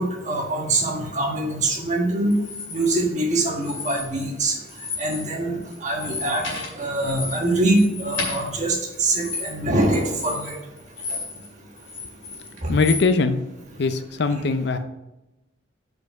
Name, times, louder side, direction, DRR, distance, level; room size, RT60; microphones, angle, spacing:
voice 1, 0.0-2.3 2.7-4.5 5.0-10.6 12.6-12.7, right 2 dB, 40° right, 0 dB, 1.5 m, -24 dB
sound 1, 2.3-2.9 3.6-4.4 4.7-5.3 5.6-11.5 11.8-13.1, left 4 dB, 75° left, 2.5 m, -33 dB
voice 2, 12.7-13.4 13.8-14.8, left 4 dB, 55° left, 9 dB, 0.5 m, -21 dB
5.5 x 5.3 x 5.7 m, 0.96 s
head